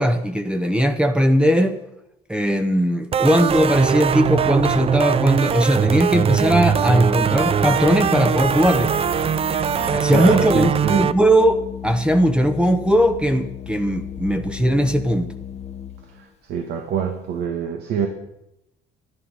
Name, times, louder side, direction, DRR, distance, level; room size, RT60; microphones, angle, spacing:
voice 1, 0.0-1.8 2.3-8.9 9.9-15.3, equal, 5° right, 8 dB, 0.8 m, -19 dB
sound 1, 3.1-11.1, right 8 dB, 35° right, 0.5 m, -21 dB
Organ, 5.9-16.3, left 9 dB, 40° left, 0.8 m, -35 dB
voice 2, 9.8-11.1 16.2-18.1, right 7 dB, 75° right, 4 dB, 1.5 m, -25 dB
11.5 x 11.5 x 5.6 m, 0.83 s
cardioid pair, 110°, 17 cm